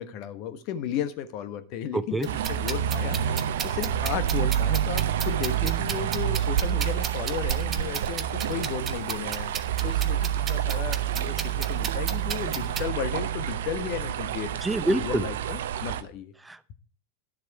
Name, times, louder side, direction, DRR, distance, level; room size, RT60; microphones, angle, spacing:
voice 1, 0.0-9.5 9.8-14.5 14.9-16.3, left 9 dB, 40° left, 11 dB, 1.2 m, -34 dB
voice 2, 1.9-2.3 14.6-15.2 16.4-16.7, right 2 dB, 5° right, 15 dB, 0.7 m, -27 dB
sound 1, 2.2-12.8, right 7 dB, 25° right, 1.1 m, -36 dB
sound 2, 2.2-16.0, right 10 dB, 60° right, 0.8 m, -28 dB
11.5 x 7.3 x 4.7 m, 0.39 s
figure-of-eight pair, 90°, 0 cm